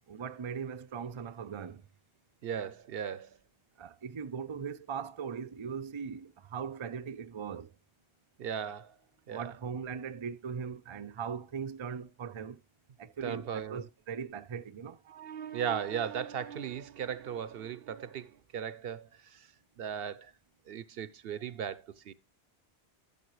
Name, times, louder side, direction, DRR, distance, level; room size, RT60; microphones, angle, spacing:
voice 1, 0.1-1.8 3.8-7.7 9.3-12.6 13.0-15.0, right 6 dB, 35° right, 0.5 m, -39 dB
voice 2, 2.4-3.4 8.4-9.0 9.3-9.5 13.2-13.9 15.1-19.5 19.8-20.3 20.7-22.1, right 8 dB, 65° right, 0.8 m, -37 dB
12.0 x 7.4 x 3.1 m
omnidirectional pair, 1.1 m